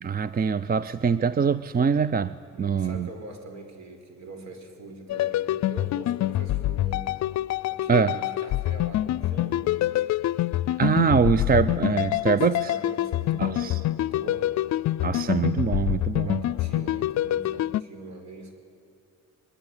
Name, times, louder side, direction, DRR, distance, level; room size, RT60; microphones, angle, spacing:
voice 1, 0.0-3.1 7.9-8.2 10.8-12.7 13.4-13.8 15.0-16.3, right 6 dB, 30° right, 0.6 m, -24 dB
voice 2, 2.5-7.3 7.7-9.7 12.2-14.5 16.2-18.5, right 2 dB, 65° right, 4.9 m, -42 dB
sound 1, 5.1-17.8, left 14 dB, 65° left, 0.5 m, -26 dB
22.5 x 22.0 x 9.8 m
cardioid pair, 90°, 30 cm